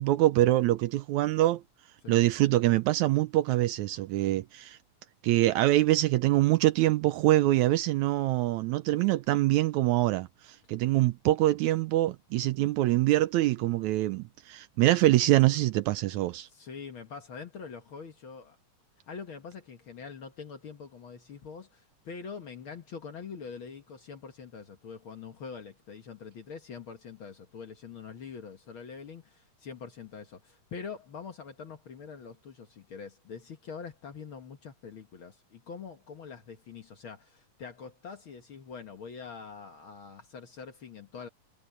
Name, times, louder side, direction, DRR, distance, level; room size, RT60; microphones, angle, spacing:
voice 1, 0.0-1.6 2.1-4.8 5.2-16.5, right 16 dB, 80° right, 1.8 m, -24 dB
voice 2, 16.5-18.6 19.1-41.3, left 6 dB, 50° left, 1.7 m, -44 dB
omnidirectional pair, 3.6 m